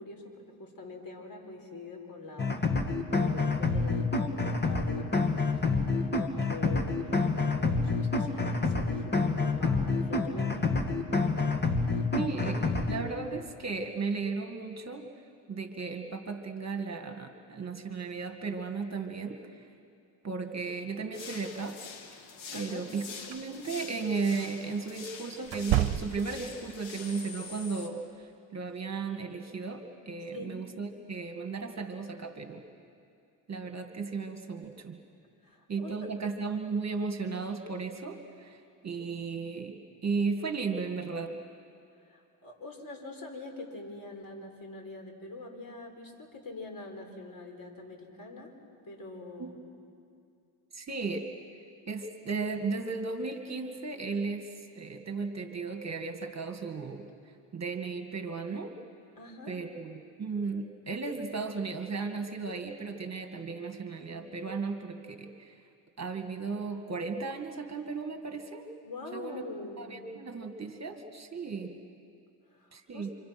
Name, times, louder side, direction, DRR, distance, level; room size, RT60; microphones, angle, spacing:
voice 1, 0.0-2.8 3.1-5.7 6.1-10.7 22.5-22.8 30.3-30.6 35.4-36.1 42.0-48.5 48.8-49.6 59.2-59.6 68.8-69.9 72.5-73.1, left 2 dB, 45° left, 2 dB, 5.2 m, -44 dB
sound 1, 2.4-13.0, left 3 dB, 20° left, 2.4 m, -28 dB
voice 2, 12.2-12.6 12.9-15.1 15.5-19.7 20.2-21.8 22.1-22.2 22.5-32.6 33.5-35.0 35.7-41.4 49.4-49.5 50.7-51.3 51.9-57.1 57.5-58.7 59.5-65.5 66.0-68.7 69.1-69.4 69.8-71.8 72.7-73.1, right 4 dB, 35° right, 5 dB, 2.1 m, -35 dB
sound 2, 21.1-27.9, left 5 dB, 65° left, 2.7 m, -45 dB
sound 3, 23.2-23.4 25.4-26.5, right 14 dB, 70° right, 1.0 m, -29 dB
28.0 x 26.0 x 6.1 m, 2.4 s
supercardioid pair, 75°, 48 cm